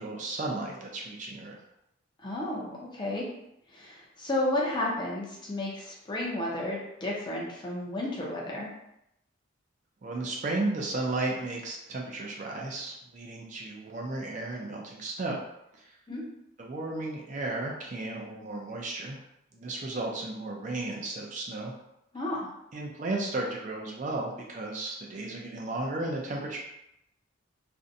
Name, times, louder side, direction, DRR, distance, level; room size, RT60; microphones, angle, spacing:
voice 1, 0.0-1.6 10.0-15.4 15.7-15.9 16.6-19.2 19.5-21.7 22.7-26.6, right 2 dB, 35° right, -1 dB, 0.4 m, -34 dB
voice 2, 2.2-3.2 3.7-8.7 16.1-16.2 22.1-22.4, left 1 dB, 20° left, -3 dB, 0.5 m, -32 dB
2.5 x 2.1 x 2.6 m, 0.81 s
head